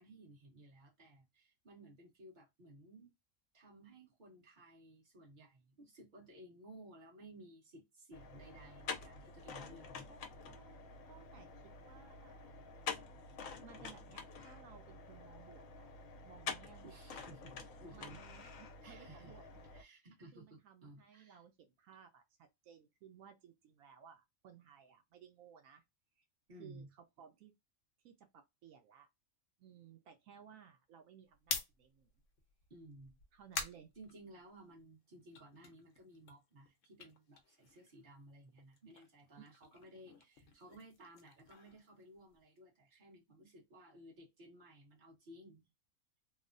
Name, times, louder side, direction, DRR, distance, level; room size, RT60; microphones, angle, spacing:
voice 1, 0.0-3.1 3.5-10.1 16.8-19.4 19.6-21.4 26.5-26.9 32.7-33.2 34.0-45.7, right 1 dB, 40° right, 1.3 m, -57 dB
sound 1, 8.1-19.8, left 5 dB, 85° left, 1.0 m, -48 dB
voice 2, 10.5-11.5 11.8-12.5 13.6-15.9 16.3-17.0 17.9-19.4 20.3-25.8 26.2-26.3 26.6-26.8 27.2-27.5 28.0-29.1 29.6-32.1 33.3-33.9 39.4-39.5, right 8 dB, 85° right, 1.0 m, -59 dB
sound 2, 31.3-34.8 35.2-38.2 38.4-42.6, left 5 dB, 70° left, 1.0 m, -47 dB
3.0 x 2.1 x 2.4 m
omnidirectional pair, 1.4 m